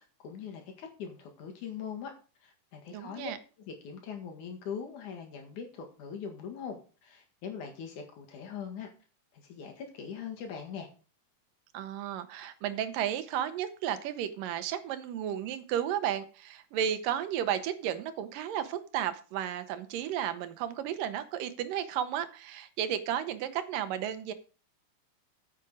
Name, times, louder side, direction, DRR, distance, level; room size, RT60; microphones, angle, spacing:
voice 1, 0.0-2.1 2.4-3.3 3.6-8.9 9.3-10.9, left 7 dB, 70° left, 3 dB, 3.2 m, -41 dB
voice 2, 2.9-3.4 11.7-24.3, right 10 dB, 85° right, 11 dB, 2.6 m, -33 dB
9.4 x 7.5 x 4.8 m, 0.37 s
omnidirectional pair, 3.8 m